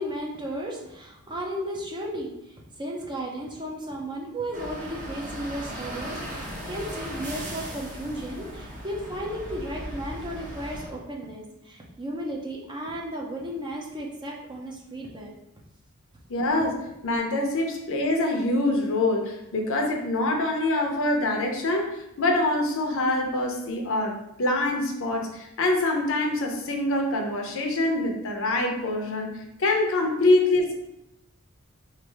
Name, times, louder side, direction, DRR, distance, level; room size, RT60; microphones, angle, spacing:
voice 1, 0.0-15.3, equal, 20° right, -1 dB, 0.6 m, -34 dB
sound 1, 4.5-10.9, equal, 35° right, 1.0 m, -37 dB
voice 2, 16.3-29.3 29.6-30.7, left 2 dB, 60° left, 2 dB, 0.7 m, -25 dB
3.3 x 2.6 x 4.5 m, 0.87 s
head